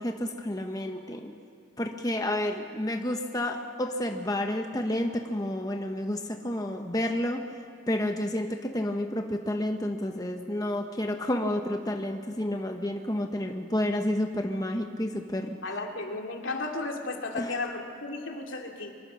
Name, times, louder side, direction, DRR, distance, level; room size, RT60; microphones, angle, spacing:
voice 1, 0.0-1.3 1.8-7.4 7.9-15.6 17.3-17.6, left 1 dB, 20° left, 4 dB, 1.1 m, -30 dB
voice 2, 15.6-19.0, left 3 dB, 80° left, 2 dB, 2.6 m, -34 dB
25.0 x 22.5 x 6.3 m, 2.2 s
head